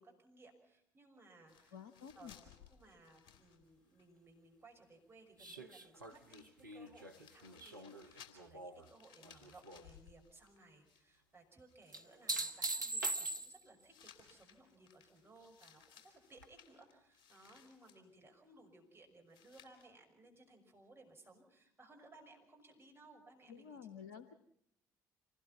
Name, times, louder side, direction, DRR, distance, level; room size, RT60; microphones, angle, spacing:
voice 1, 0.0-1.8 2.1-23.8, right 2 dB, 25° right, 2 dB, 6.0 m, -62 dB
sound 1, 1.5-4.1 4.3-4.4 5.7-5.8 6.0-11.4 11.7-12.3 13.9-18.0 19.3-19.9, left 8 dB, 55° left, 3.0 m, -63 dB
voice 2, 1.7-2.4 23.5-24.4, left 8 dB, 75° left, 11 dB, 1.0 m, -51 dB
sound 2, 5.4-8.9 9.2-9.8 11.9-13.8 16.4-16.5, right 2 dB, 90° right, 0.9 m, -42 dB
26.5 x 18.5 x 5.9 m, 0.74 s
figure-of-eight pair, 50°, 10 cm